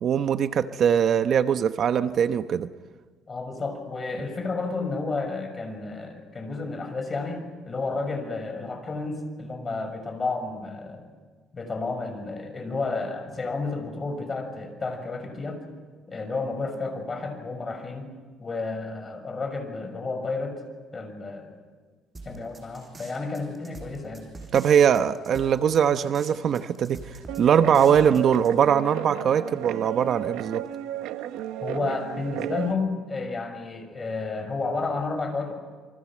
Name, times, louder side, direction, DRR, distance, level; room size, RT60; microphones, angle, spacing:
voice 1, 0.0-2.7 24.5-30.6, right 8 dB, 50° right, 10 dB, 0.9 m, -21 dB
voice 2, 3.3-11.1 11.5-15.6 16.1-18.1 18.4-20.6 20.9-21.6 22.2-24.3 31.6-35.5, left 3 dB, 25° left, 6 dB, 6.3 m, -31 dB
sound 1, 22.1-28.5, right 2 dB, 20° right, 7.0 m, -44 dB
Guitar, 27.3-32.7, right 12 dB, 85° right, 1.2 m, -33 dB
28.0 x 24.5 x 7.5 m, 1.5 s
cardioid pair, 125°, 0 cm